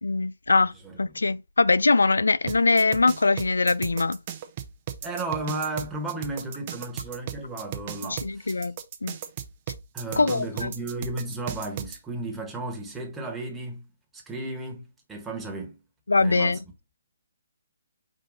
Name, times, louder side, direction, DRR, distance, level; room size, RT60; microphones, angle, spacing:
voice 1, 0.0-4.2 8.1-9.2 10.2-10.7 16.1-16.6, left 3 dB, 80° left, 0.3 m, -22 dB
voice 2, 0.8-1.2 5.0-8.6 9.9-13.9 14.1-15.8 16.2-16.6, right 2 dB, 10° right, 1.3 m, -34 dB
sound 1, 2.5-12.0, right 9 dB, 35° right, 0.7 m, -36 dB
5.1 x 2.5 x 4.0 m
figure-of-eight pair, 145°, 0 cm